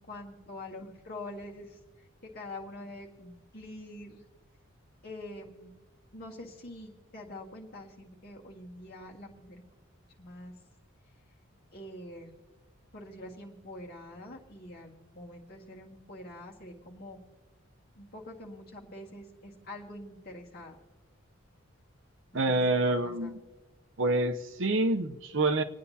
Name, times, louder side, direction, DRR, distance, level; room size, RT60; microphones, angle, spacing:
voice 1, 0.0-1.8 2.2-4.2 5.0-5.7 6.1-9.6 10.2-10.5 11.7-12.4 12.9-17.2 18.0-20.8 22.3-22.5 22.8-23.4, left 1 dB, 50° left, -1 dB, 1.9 m, -45 dB
voice 2, 22.3-23.4 24.0-25.6, right 2 dB, 65° right, 8 dB, 0.7 m, -27 dB
28.0 x 9.4 x 2.8 m, 1.2 s
head